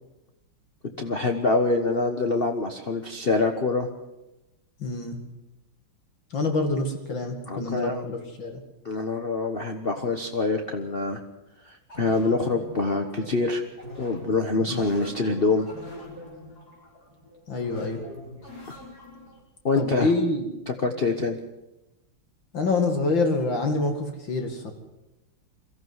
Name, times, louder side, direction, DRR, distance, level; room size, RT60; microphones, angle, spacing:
voice 1, 1.0-3.9 7.5-8.0 8.8-11.2 11.6-13.6 14.0-15.7 19.6-20.1 20.7-21.4, left 3 dB, 35° left, 4 dB, 1.3 m, -25 dB
voice 2, 4.8-5.2 6.3-8.6 14.7-14.9 17.5-18.0 19.8-20.5 22.5-24.7, left 3 dB, 65° left, 4 dB, 2.9 m, -26 dB
sound 1, 11.9-19.4, left 1 dB, 50° left, 5.6 m, -43 dB
23.5 x 14.5 x 8.0 m, 0.95 s
omnidirectional pair, 2.2 m